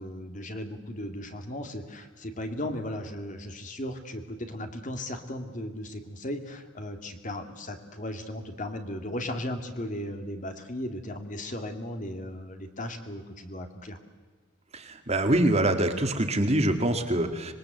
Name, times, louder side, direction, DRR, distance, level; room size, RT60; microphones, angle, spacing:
voice 1, 0.0-14.0, left 1 dB, 40° left, 6 dB, 2.2 m, -36 dB
voice 2, 14.7-17.5, right 1 dB, 35° right, 6 dB, 2.0 m, -25 dB
25.5 x 21.0 x 7.9 m, 1.4 s
head